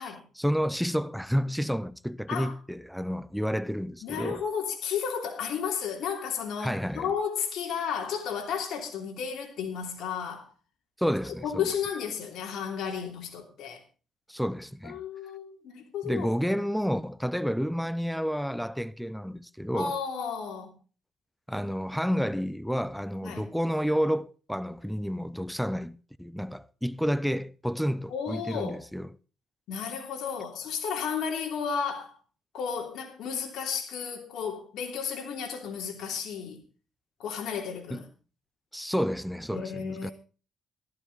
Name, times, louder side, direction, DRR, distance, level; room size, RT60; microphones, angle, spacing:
voice 1, 0.0-4.4 6.6-7.1 11.0-11.7 14.3-15.0 16.0-20.0 21.5-29.1 37.9-38.0 38.7-40.1, equal, ahead, 0.6 m, -30 dB
voice 2, 4.0-10.5 11.2-13.8 14.8-16.3 19.7-20.7 23.2-23.5 28.1-28.8 29.7-32.2 32.5-36.6 37.2-38.1 39.5-40.1, left 7 dB, 80° left, 2.9 m, -33 dB
14.0 x 12.5 x 4.1 m
cardioid pair, 90°, 0 cm